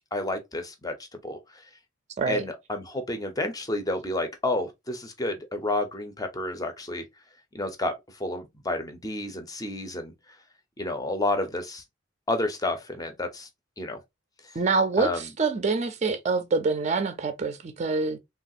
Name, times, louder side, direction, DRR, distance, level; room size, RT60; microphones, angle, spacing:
voice 1, 0.1-1.0 1.2-1.4 2.3-7.0 7.5-7.9 8.2-10.1 10.8-11.8 12.3-13.5 13.8-14.0 15.0-15.2, left 2 dB, 20° left, 0.5 m, -30 dB
voice 2, 14.5-18.2, right 4 dB, 35° right, 0.4 m, -26 dB
3.2 x 2.3 x 2.6 m
head